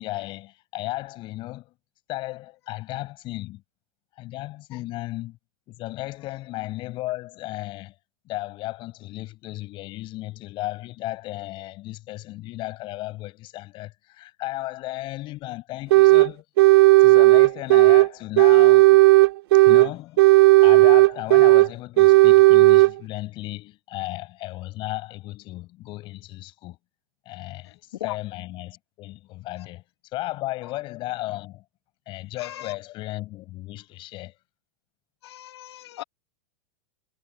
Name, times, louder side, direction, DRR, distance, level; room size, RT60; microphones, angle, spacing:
voice 1, 0.0-1.7 2.1-3.6 4.2-5.4 5.7-7.9 8.2-16.4 17.0-19.0 19.7-20.2 20.6-26.8 27.2-29.8 30.1-31.6 32.1-34.3, left 18 dB, 35° left, 6.6 m, -34 dB
sound 1, 15.9-16.3 16.6-18.1 18.4-19.9 20.2-21.7 22.0-22.9, right 20 dB, 65° right, 0.6 m, -13 dB
voice 2, 27.6-28.2 30.6-30.8 32.4-32.8 35.2-36.0, left 14 dB, 75° left, 1.8 m, -38 dB
supercardioid pair, 145°, 14 cm